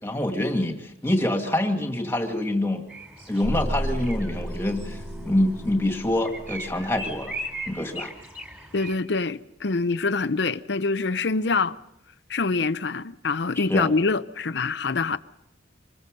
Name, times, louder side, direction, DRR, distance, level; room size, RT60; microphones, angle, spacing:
voice 1, 0.0-2.9 3.3-5.0 5.3-7.3 7.7-8.1 13.6-13.9, left 1 dB, 15° left, 2.2 m, -25 dB
sound 1, 2.9-9.0, right 1 dB, 10° right, 4.0 m, -39 dB
sound 2, 3.4-7.7, equal, 50° right, 7.9 m, -33 dB
voice 2, 8.7-11.8 12.3-15.2, left 4 dB, 65° left, 0.7 m, -25 dB
25.5 x 21.0 x 5.3 m
head